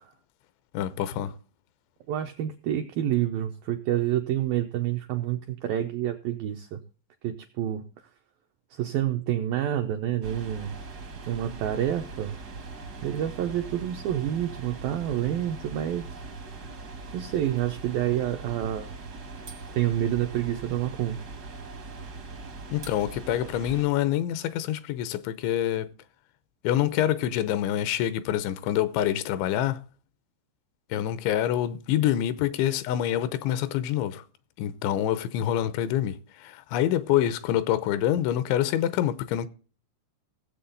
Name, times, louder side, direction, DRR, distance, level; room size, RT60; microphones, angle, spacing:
voice 1, 0.7-1.4 22.7-25.9 26.6-29.8 30.9-34.2 34.6-39.5, left 11 dB, 85° left, 3.2 m, -26 dB
voice 2, 2.1-6.8 7.2-7.9 8.7-10.8 11.2-12.4 13.0-16.2 17.1-18.9 19.7-21.2, right 11 dB, 85° right, 2.0 m, -28 dB
sound 1, 10.2-23.8, right 3 dB, 70° right, 0.9 m, -41 dB
17.0 x 7.8 x 3.9 m
omnidirectional pair, 5.2 m